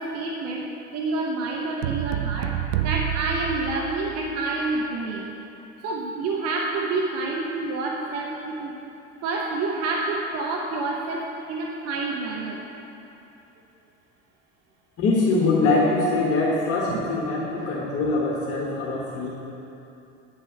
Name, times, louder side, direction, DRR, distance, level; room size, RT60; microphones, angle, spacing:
voice 1, 0.0-2.5 2.8-5.3 5.8-8.8 9.2-12.6 16.9-17.1 17.6-17.7, right 3 dB, 40° right, -1 dB, 0.9 m, -28 dB
sound 1, 1.8-4.3, right 11 dB, 65° right, 0.6 m, -28 dB
voice 2, 15.0-19.3, left 3 dB, 35° left, -4 dB, 1.4 m, -23 dB
8.8 x 6.9 x 5.6 m, 2.9 s
figure-of-eight pair, 70°, 39 cm